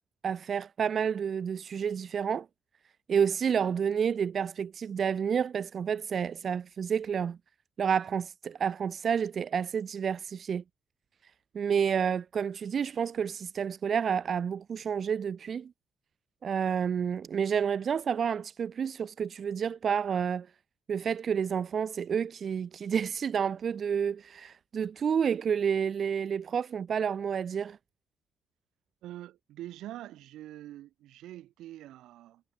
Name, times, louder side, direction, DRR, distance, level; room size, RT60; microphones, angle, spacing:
voice 1, 0.2-2.5 3.1-7.4 7.8-10.6 11.5-15.7 16.4-20.5 20.9-27.8, right 7 dB, 50° right, 1.1 m, -29 dB
voice 2, 29.0-32.4, right 14 dB, 85° right, 4.8 m, -45 dB
cardioid pair, 90°, 0 cm